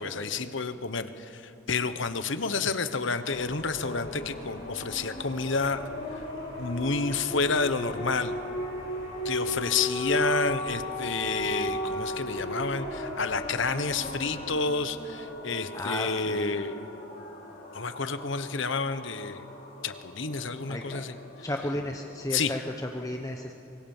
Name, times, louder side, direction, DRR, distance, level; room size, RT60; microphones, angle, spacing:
voice 1, 0.0-5.9 6.2-6.3 6.6-8.4 9.2-16.8 17.7-19.4 19.8-21.2 22.3-22.5, left 4 dB, 65° left, 11 dB, 1.2 m, -30 dB
sound 1, 3.1-22.5, left 1 dB, 45° left, 3.6 m, -37 dB
sound 2, 3.3-14.5, right 1 dB, 85° right, 5.4 m, -48 dB
voice 2, 15.7-16.5 20.7-21.1 21.4-23.5, left 1 dB, 15° left, 2 dB, 1.0 m, -33 dB
25.0 x 23.5 x 7.3 m, 2.7 s
head